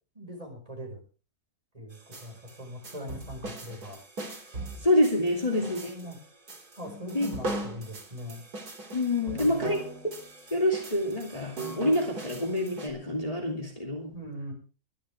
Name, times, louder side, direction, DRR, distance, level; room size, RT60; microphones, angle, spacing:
voice 1, 0.1-1.0 1.7-4.0 5.5-6.2 6.8-8.4 9.2-9.7 14.1-14.5, equal, 25° right, 1 dB, 5.1 m, -41 dB
sound 1, 1.9-12.9, right 2 dB, 80° right, 3.4 m, -39 dB
voice 2, 4.8-5.9 7.1-7.3 8.9-10.2 10.5-14.1, left 1 dB, 25° left, 0 dB, 2.6 m, -27 dB
22.0 x 11.0 x 3.5 m, 0.35 s
omnidirectional pair, 1.6 m